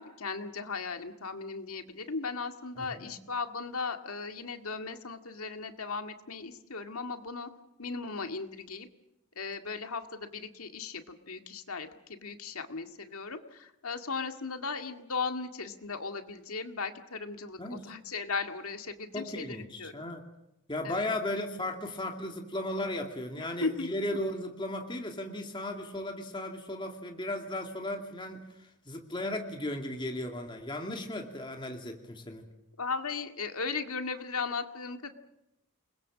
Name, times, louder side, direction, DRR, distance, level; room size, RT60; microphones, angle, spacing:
voice 1, 0.0-7.5 7.8-8.9 9.4-20.1 20.8-21.1 23.4-23.9 32.8-35.1, left 4 dB, 80° left, 6 dB, 2.0 m, -37 dB
voice 2, 2.8-3.1 17.6-17.9 19.1-20.2 20.7-32.5, left 1 dB, 20° left, 3 dB, 2.4 m, -36 dB
29.0 x 21.0 x 7.4 m, 0.88 s
head